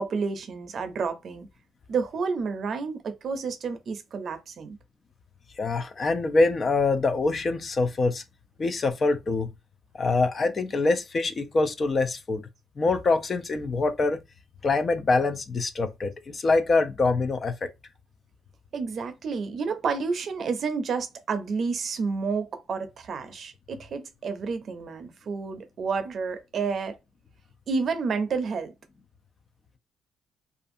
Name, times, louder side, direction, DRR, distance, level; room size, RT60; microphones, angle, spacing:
voice 1, 0.0-1.5 1.9-4.8 18.7-27.0 27.7-28.7, right 5 dB, 55° right, 0.5 m, -30 dB
voice 2, 5.6-8.2 8.6-9.5 10.0-12.4 12.8-14.2 14.6-17.7, left 3 dB, 40° left, 0.4 m, -24 dB
2.5 x 2.4 x 2.5 m
cardioid pair, 90°, 0 cm